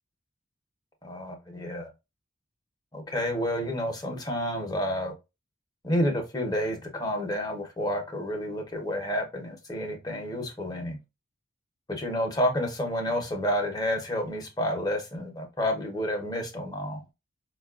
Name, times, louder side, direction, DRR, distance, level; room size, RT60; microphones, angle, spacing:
voice 1, 1.0-1.9 2.9-5.1 5.8-11.0 11.9-17.0, equal, 20° left, 0.8 m, -30 dB
5.1 x 2.3 x 2.3 m
head